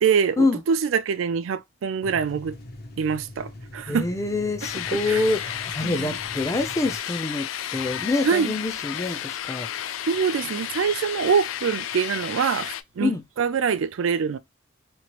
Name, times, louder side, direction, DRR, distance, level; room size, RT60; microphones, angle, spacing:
voice 1, 0.0-2.6 3.0-4.1 5.1-5.2 5.8-6.1 8.2-8.5 10.1-13.1 13.4-14.4, right 6 dB, 75° right, 0.4 m, -24 dB
sound 1, 2.0-7.0, left 1 dB, 50° left, 0.7 m, -41 dB
voice 2, 3.9-9.7 13.0-13.2, left 2 dB, 15° left, 0.5 m, -26 dB
sound 2, 4.6-12.8, left 11 dB, 75° left, 0.3 m, -32 dB
3.1 x 2.4 x 2.9 m
head